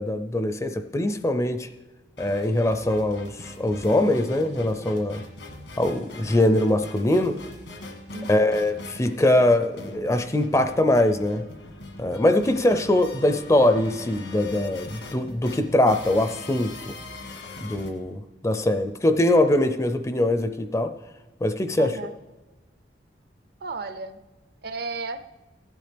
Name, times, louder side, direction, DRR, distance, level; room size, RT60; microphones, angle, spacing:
voice 1, 0.0-1.7 2.2-5.2 5.8-7.4 8.3-11.4 12.0-16.9 17.6-20.9 21.4-21.9, left 1 dB, 15° left, 9 dB, 0.4 m, -22 dB
sound 1, 2.2-17.9, left 2 dB, 80° left, 1.5 m, -42 dB
voice 2, 8.1-8.5 21.8-22.1 23.6-24.2 24.6-25.2, right 3 dB, 55° right, 11 dB, 0.6 m, -34 dB
15.5 x 9.4 x 3.4 m, 1.2 s
head